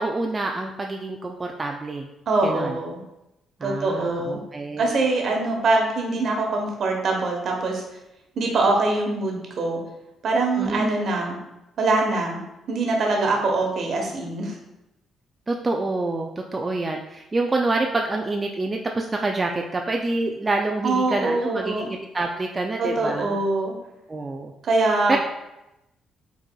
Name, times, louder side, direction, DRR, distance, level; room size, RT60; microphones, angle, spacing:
voice 1, 0.0-2.1 2.4-2.8 3.6-5.1 10.6-10.9 15.5-23.4 24.1-24.5 25.1-25.2, right 2 dB, 25° right, 1 dB, 0.4 m, -27 dB
voice 2, 2.3-3.0 3.6-4.4 4.8-7.8 8.4-9.8 10.2-11.4 11.8-12.4 12.7-14.5 20.8-21.9 22.8-23.7 24.6-25.2, right 2 dB, 60° right, 0 dB, 1.0 m, -23 dB
4.9 x 4.0 x 2.3 m, 0.92 s
cardioid pair, 90°, 0 cm